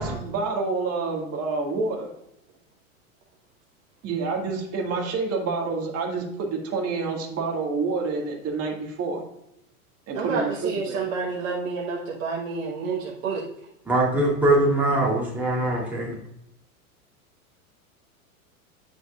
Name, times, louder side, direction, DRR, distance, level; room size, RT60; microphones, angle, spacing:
voice 1, 0.0-2.1 4.0-9.2 10.1-11.0, right 4 dB, 35° right, 1 dB, 1.9 m, -28 dB
voice 2, 10.1-13.4, right 4 dB, 65° right, -2 dB, 1.3 m, -29 dB
voice 3, 13.8-16.2, right 1 dB, 5° right, -5 dB, 3.1 m, -22 dB
9.2 x 6.5 x 2.4 m, 0.77 s
hypercardioid pair, 100°, 44 cm